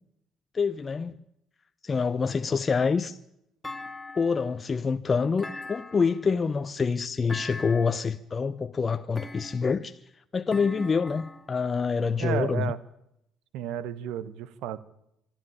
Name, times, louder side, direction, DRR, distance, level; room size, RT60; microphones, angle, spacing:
voice 1, 0.5-1.1 1.8-3.2 4.2-10.0 10.3-12.7, left 5 dB, 35° left, 0.8 m, -26 dB
Thump thud, 3.6-4.6 5.4-6.3 7.3-8.0 9.1-9.8 10.5-11.5, left 2 dB, 15° left, 2.2 m, -41 dB
voice 2, 12.2-12.8 13.5-14.8, right 11 dB, 70° right, 1.2 m, -32 dB
24.5 x 12.0 x 8.9 m
hypercardioid pair, 60°, 0 cm